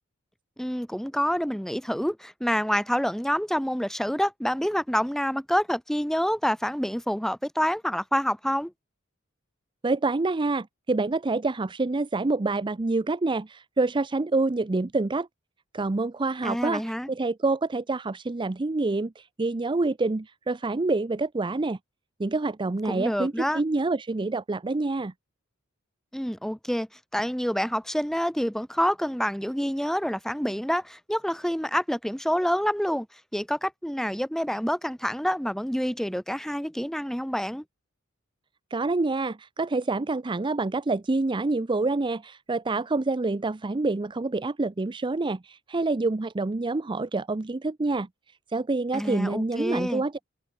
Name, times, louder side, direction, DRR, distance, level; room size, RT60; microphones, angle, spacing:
voice 1, 0.6-8.7 16.4-17.1 22.9-23.6 26.1-26.9 27.1-33.1 33.3-37.6 48.9-50.0, equal, ahead, 1.8 m, -27 dB
voice 2, 9.8-15.3 15.7-16.8 17.1-21.8 22.2-25.1 38.7-48.1 48.5-50.1, right 3 dB, 25° right, 0.5 m, -27 dB
head